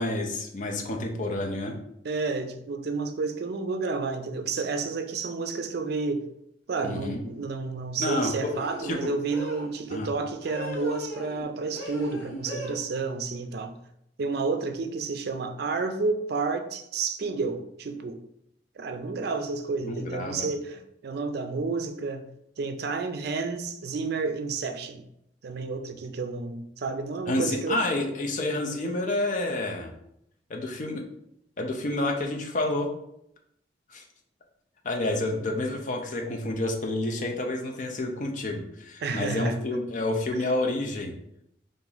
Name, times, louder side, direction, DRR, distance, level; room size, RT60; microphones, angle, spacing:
voice 1, 0.0-1.8 6.8-7.2 8.0-8.5 8.8-9.1 9.9-10.1 19.8-20.5 27.3-29.9 30.5-31.0 31.6-32.9 33.9-34.0 34.8-41.1, left 2 dB, 45° left, 0.5 m, -29 dB
voice 2, 2.0-6.3 6.7-13.7 14.2-18.2 18.8-22.3 22.6-25.1 25.4-27.8 39.0-39.6 40.3-40.4, right 4 dB, 60° right, 0.4 m, -30 dB
sound 1, 6.8-7.1 8.5-9.7 10.4-11.5 11.7-12.7, equal, 75° left, 1.1 m, -38 dB
2.9 x 2.5 x 3.9 m
head